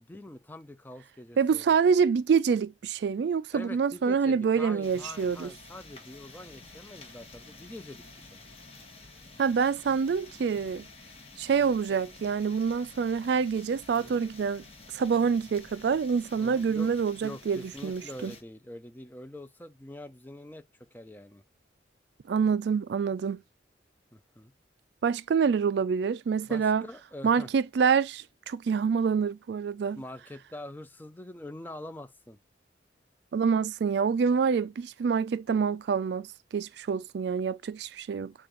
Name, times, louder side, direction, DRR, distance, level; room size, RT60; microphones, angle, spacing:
voice 1, 0.0-1.8 3.5-8.4 11.6-11.7 13.9-14.2 16.4-16.9 17.2-20.6 20.9-21.4 24.1-24.5 26.5-27.5 30.0-32.4, left 1 dB, 10° left, 0.4 m, -44 dB
voice 2, 1.4-5.5 9.4-10.8 11.4-14.6 14.9-18.3 22.3-23.4 25.0-26.9 27.2-30.0 33.3-36.3 36.5-38.3, right 6 dB, 65° right, 0.3 m, -26 dB
sound 1, 4.8-18.4, left 3 dB, 30° left, 1.2 m, -50 dB
6.8 x 2.4 x 3.0 m
head